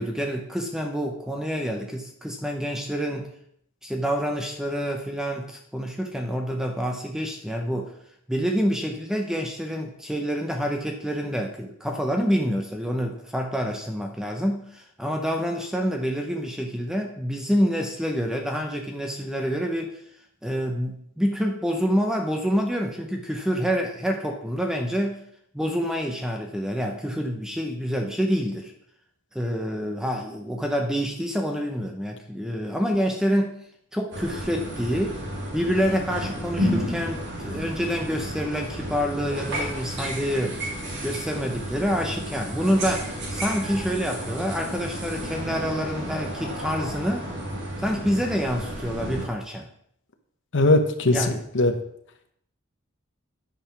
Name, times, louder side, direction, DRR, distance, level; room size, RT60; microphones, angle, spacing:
voice 1, 0.0-3.3 3.8-7.9 8.3-19.9 20.4-25.2 25.5-28.7 29.3-33.6 33.9-35.2 35.5-40.6 41.0-47.3 47.8-49.7 51.1-51.4, equal, 5° right, 3 dB, 0.8 m, -27 dB
sound 1, 34.1-49.3, equal, 50° right, 1.9 m, -32 dB
voice 2, 50.5-51.8, left 2 dB, 55° left, 6 dB, 1.0 m, -20 dB
10.0 x 5.3 x 6.1 m, 0.70 s
head